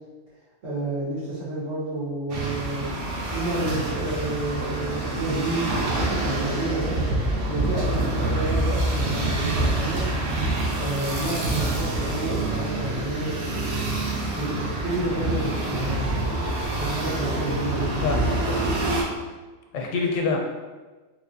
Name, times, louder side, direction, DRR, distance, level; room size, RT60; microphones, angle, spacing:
voice 1, 0.6-2.9 3.3-7.0 7.5-10.0 10.8-16.2 16.8-18.3, right 2 dB, 80° right, -9 dB, 1.7 m, -30 dB
sound 1, 2.3-19.0, right 2 dB, 55° right, 0.7 m, -26 dB
voice 2, 18.0-18.7 19.7-20.4, left 4 dB, 90° left, 2 dB, 1.0 m, -26 dB
3.2 x 3.1 x 2.6 m, 1.3 s
omnidirectional pair, 1.3 m